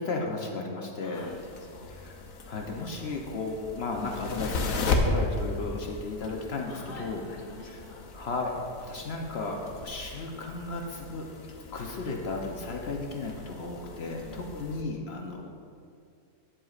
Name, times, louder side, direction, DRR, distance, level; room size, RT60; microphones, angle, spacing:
voice 1, 0.0-1.3 1.9-2.1 2.5-7.2 7.7-7.8 8.1-8.5 8.8-11.3 11.7-15.5, left 3 dB, 60° left, 1 dB, 0.9 m, -34 dB
voice 2, 0.9-1.9 6.7-8.0 14.0-14.6, left 2 dB, 25° left, -5 dB, 1.5 m, -47 dB
sound 1, 1.1-14.8, left 3 dB, 85° left, 1.2 m, -36 dB
9.8 x 7.7 x 2.4 m, 2.4 s
omnidirectional pair, 1.4 m